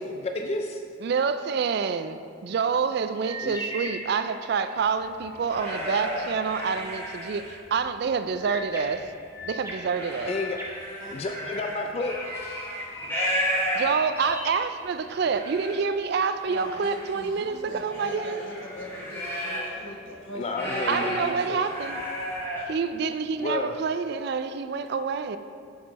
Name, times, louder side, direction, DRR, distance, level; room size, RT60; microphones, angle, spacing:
voice 1, 0.0-0.8 3.4-3.6 10.3-10.6 11.1-12.1 20.3-21.7 23.4-23.7, left 2 dB, 30° left, 3 dB, 0.3 m, -31 dB
voice 2, 1.0-9.0 9.4-10.3 13.7-18.4 20.9-22.0 22.7-25.4, right 5 dB, 55° right, 10 dB, 0.3 m, -27 dB
sound 1, 3.2-4.9 8.4-11.6 12.0-15.4, right 1 dB, 15° right, 0.9 m, -39 dB
sound 2, 5.0-7.8 8.3-9.0 9.4-14.3 14.8-14.9 15.1-15.8 16.4-19.8 20.1-22.7, equal, 10° left, 1.4 m, -33 dB
voice 3, 11.0-11.7 16.5-21.5, left 2 dB, 80° left, -2 dB, 1.2 m, -40 dB
6.4 x 6.0 x 4.1 m, 2.2 s
head